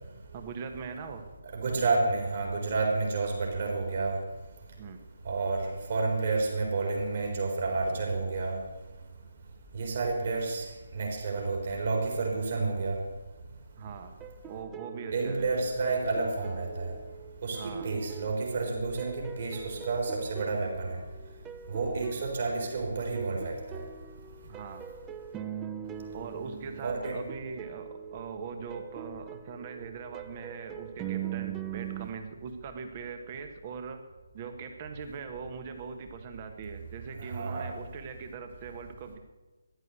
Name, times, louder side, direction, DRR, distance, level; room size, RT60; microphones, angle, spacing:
voice 1, 0.3-1.3 4.8-5.0 13.8-14.2 14.5-15.5 17.6-17.9 24.4-24.8 26.1-34.0 34.3-39.2, right 5 dB, 30° right, 7 dB, 1.4 m, -41 dB
voice 2, 1.4-4.2 5.2-8.6 9.7-10.7 10.9-13.0 15.1-16.9 17.4-21.0 21.7-23.8 26.8-27.2 37.2-37.7, right 3 dB, 45° right, 0 dB, 4.2 m, -30 dB
sound 1, 14.2-32.1, right 8 dB, 10° right, 0.7 m, -43 dB
14.5 x 11.0 x 8.1 m, 1.2 s
figure-of-eight pair, 145°, 0 cm